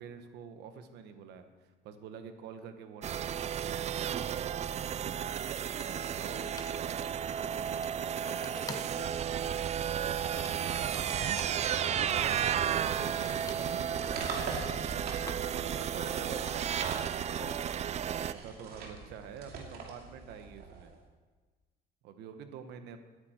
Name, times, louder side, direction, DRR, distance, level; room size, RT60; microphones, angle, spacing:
voice 1, 0.0-3.5 11.8-13.6 14.9-15.2 15.5-17.4 18.2-20.9 22.0-23.0, right 7 dB, 85° right, 8 dB, 1.2 m, -47 dB
sound 1, 3.0-18.3, right 9 dB, 40° right, 0.4 m, -33 dB
sound 2, 4.9-5.0 5.8-6.1 6.6-6.8 7.8-8.0 8.4-9.0 9.3-9.5 10.2-11.6 13.0-15.7, left 3 dB, 20° left, 1.0 m, -48 dB
voice 2, 6.2-7.8 8.2-9.7 12.3-14.2 14.8-15.1 15.4-17.8, left 4 dB, 65° left, 0 dB, 2.9 m, -51 dB
sound 3, 10.1-12.8 13.7-15.9 16.4-17.6 18.1-21.0, right 4 dB, 65° right, 2.7 m, -43 dB
17.0 x 9.6 x 4.4 m, 1.3 s
cardioid pair, 110°, 17 cm